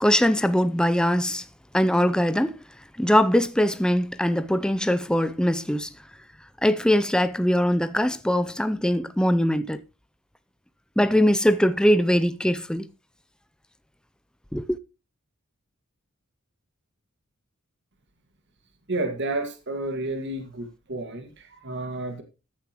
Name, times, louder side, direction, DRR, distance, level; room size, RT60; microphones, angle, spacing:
voice 1, 0.0-1.4 1.7-2.6 3.0-5.9 6.6-9.8 11.0-12.9 14.5-14.8, equal, 5° left, 0.5 m, -21 dB
voice 2, 18.9-22.2, right 2 dB, 55° right, 1.9 m, -31 dB
14.5 x 9.5 x 3.0 m
head